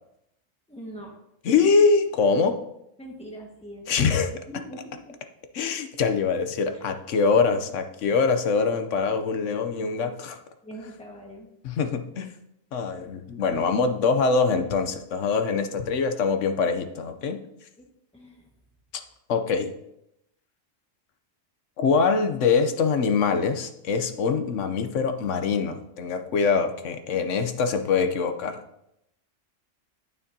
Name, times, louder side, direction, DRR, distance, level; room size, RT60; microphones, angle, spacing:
voice 1, 0.7-1.1 3.0-4.2 4.5-5.2 6.6-6.8 10.6-11.5 17.8-17.9 18.1-18.5, right 1 dB, 5° left, -1 dB, 1.5 m, -42 dB
voice 2, 1.4-2.6 3.9-4.3 5.5-10.4 11.6-12.3 12.7-17.4 19.3-19.7 21.8-28.6, left 5 dB, 70° left, 8 dB, 1.1 m, -24 dB
9.0 x 8.8 x 2.8 m, 0.81 s
omnidirectional pair, 1.3 m